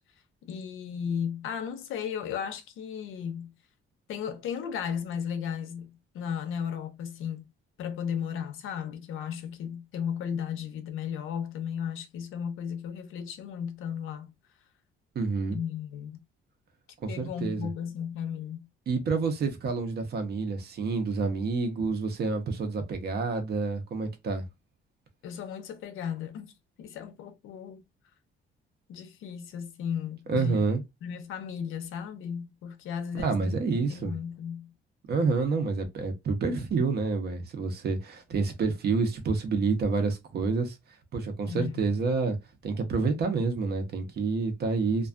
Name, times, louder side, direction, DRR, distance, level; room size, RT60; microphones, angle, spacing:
voice 1, 0.4-3.5 4.1-7.4 7.8-14.3 15.5-16.2 17.1-18.7 25.2-26.5 26.8-27.8 28.9-30.7 31.0-33.5 33.8-34.7 41.5-41.9, left 8 dB, 80° left, 0.6 m, -35 dB
voice 2, 15.1-15.6 17.0-17.6 18.9-24.4 30.3-30.8 33.2-34.1 35.1-40.7 41.1-42.4 42.6-45.1, right 4 dB, 50° right, 0.7 m, -28 dB
2.4 x 2.2 x 2.4 m
cardioid pair, 145°, 21 cm